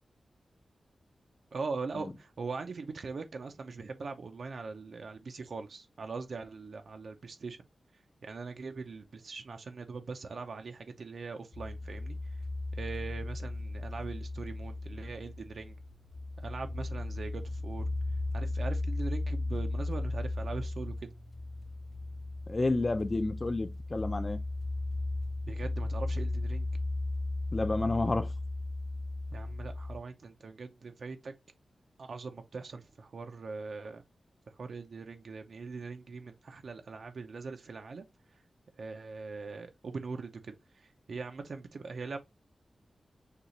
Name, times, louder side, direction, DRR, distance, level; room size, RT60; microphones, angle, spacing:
voice 1, 1.5-7.6 8.2-12.4 12.7-15.8 16.4-17.8 18.3-20.9 25.5-26.7 29.3-31.3 32.0-34.0 34.6-38.0 38.8-42.2, right 4 dB, 60° right, 0.5 m, -41 dB
sound 1, 11.5-30.0, left 2 dB, 55° left, 1.1 m, -36 dB
voice 2, 22.5-24.4 27.5-28.3, left 2 dB, 25° left, 0.5 m, -30 dB
6.6 x 2.4 x 3.0 m
wide cardioid pair, 170°, 0 cm